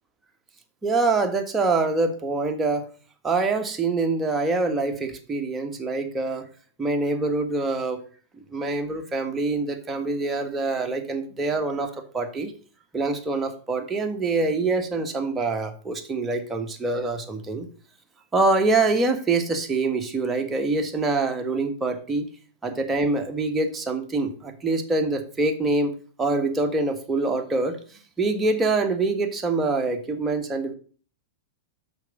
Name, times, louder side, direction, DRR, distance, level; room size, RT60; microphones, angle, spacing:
voice 1, 0.8-2.9 3.2-6.5 6.8-8.0 8.5-12.5 12.9-17.7 18.3-22.3 22.6-25.9 26.2-27.8 28.2-30.7, right 3 dB, 15° right, 3 dB, 1.5 m, -25 dB
6.3 x 5.3 x 6.5 m, 0.41 s
hypercardioid pair, 110°, 0 cm